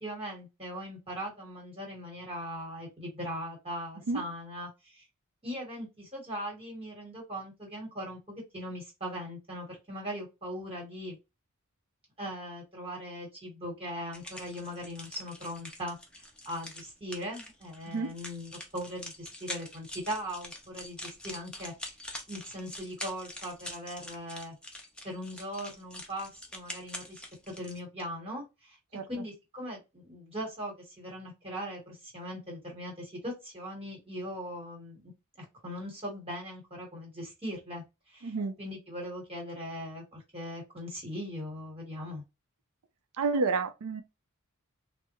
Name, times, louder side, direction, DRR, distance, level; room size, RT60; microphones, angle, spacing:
voice 1, 0.0-5.0 5.4-11.2 12.2-16.0 16.4-21.7 22.3-24.6 25.0-27.2 27.5-28.8 29.1-35.1 35.4-42.2, equal, 25° right, 1.2 m, -40 dB
sound 1, 14.1-27.8, left 1 dB, 5° left, 0.6 m, -45 dB
voice 2, 38.2-38.6 43.2-44.0, right 4 dB, 75° right, 0.5 m, -30 dB
3.4 x 2.0 x 3.0 m
head